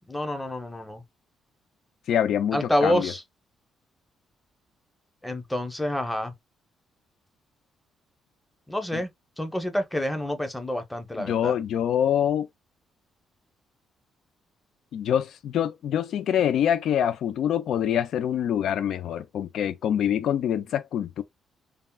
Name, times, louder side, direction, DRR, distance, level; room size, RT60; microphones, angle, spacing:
voice 1, 0.1-1.0 2.5-3.2 5.2-6.3 8.7-9.1 9.4-11.6, left 1 dB, 10° left, 0.8 m, -28 dB
voice 2, 2.1-3.1 11.2-12.5 14.9-21.2, left 9 dB, 70° left, 0.3 m, -25 dB
3.5 x 2.1 x 2.3 m
cardioid pair, 90°, 0 cm